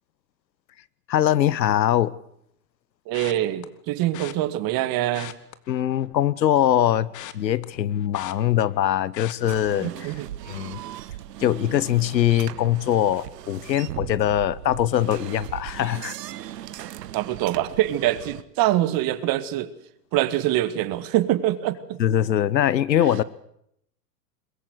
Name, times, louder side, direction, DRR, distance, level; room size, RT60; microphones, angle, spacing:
voice 1, 1.1-2.1 5.7-10.1 10.5-10.8 11.4-16.1 22.0-23.2, left 11 dB, 85° left, 1.0 m, -22 dB
sound 1, 3.1-3.7 4.1-4.3 5.0-6.3 6.6-8.8 9.1-9.5 10.0-10.3 10.6-10.7, left 14 dB, 35° left, 1.6 m, -41 dB
voice 2, 3.1-5.3 9.8-10.3 17.1-19.7 20.1-22.0, right 14 dB, 45° right, 2.0 m, -24 dB
sound 2, 9.4-18.4, right 12 dB, 70° right, 1.4 m, -38 dB
22.0 x 22.0 x 8.0 m
hypercardioid pair, 100°, 50 cm